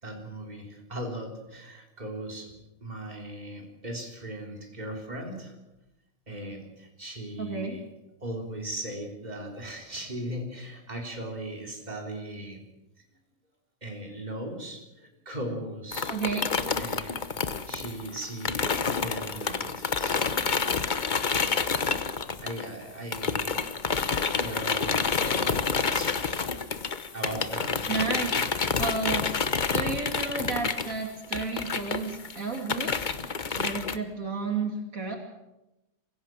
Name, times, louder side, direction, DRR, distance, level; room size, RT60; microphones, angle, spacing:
voice 1, 0.0-2.6 2.8-5.6 6.3-7.9 8.2-12.6 13.8-16.2 16.8-17.2 17.7-20.4 21.1-21.7 22.4-24.0 24.3-26.4 27.1-28.2 33.5-33.6, right 1 dB, 30° right, 1 dB, 3.8 m, -38 dB
voice 2, 7.4-7.8 16.1-16.5 27.9-28.4 28.8-29.2 29.7-33.1 33.6-35.2, right 4 dB, 75° right, 3 dB, 3.2 m, -32 dB
sound 1, 15.9-22.8 23.1-34.0, left 5 dB, 40° left, 1.0 m, -28 dB
24.0 x 16.0 x 7.6 m, 0.95 s
omnidirectional pair, 1.4 m